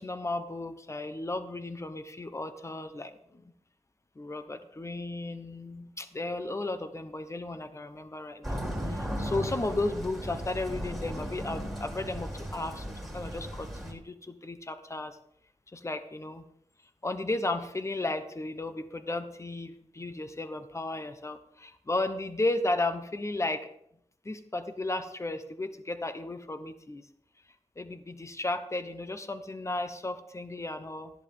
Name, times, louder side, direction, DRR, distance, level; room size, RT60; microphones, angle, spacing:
voice 1, 0.0-3.5 4.2-15.2 15.7-16.5 17.0-23.7 24.2-27.1 27.8-31.1, left 2 dB, 25° left, 9 dB, 1.0 m, -34 dB
sound 1, 8.4-13.9, equal, ahead, 3.1 m, -36 dB
13.5 x 10.5 x 3.6 m, 0.73 s
wide cardioid pair, 110°, 12 cm